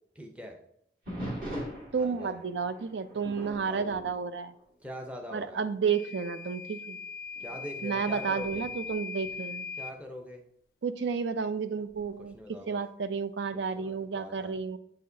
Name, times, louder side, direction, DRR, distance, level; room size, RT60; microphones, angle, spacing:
voice 1, 0.1-0.6 2.0-2.4 3.4-3.9 4.8-5.6 7.4-8.6 9.8-10.4 12.3-12.8 13.5-14.6, equal, 5° right, 2 dB, 0.6 m, -43 dB
sound 1, 1.1-5.2 5.5-5.9 6.5-6.6 7.3-10.0 11.9-12.4, equal, 45° right, 2.2 m, -43 dB
voice 2, 1.9-4.5 5.3-7.0 7.8-9.7 10.8-14.8, right 5 dB, 80° right, 12 dB, 0.4 m, -31 dB
Microwave oven / Alarm, 5.9-10.0, left 5 dB, 50° left, 0.3 m, -40 dB
8.2 x 4.7 x 2.7 m, 0.73 s
head